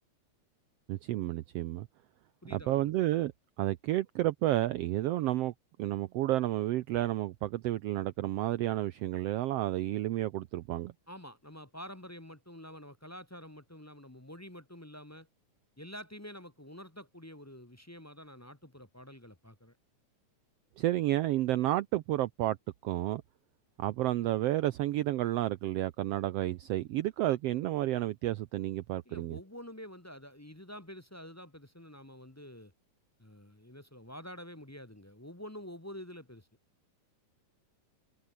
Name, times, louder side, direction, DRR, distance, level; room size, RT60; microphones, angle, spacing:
voice 1, 0.9-1.9 2.5-3.3 3.6-5.5 5.8-10.9 20.8-22.6 22.8-23.2 23.8-29.4, right 15 dB, 75° right, 1.5 m, -31 dB
voice 2, 2.4-2.9 11.1-15.3 15.8-19.8 29.0-32.7 33.2-36.5, equal, 15° left, 0.6 m, -48 dB
omnidirectional pair, 3.3 m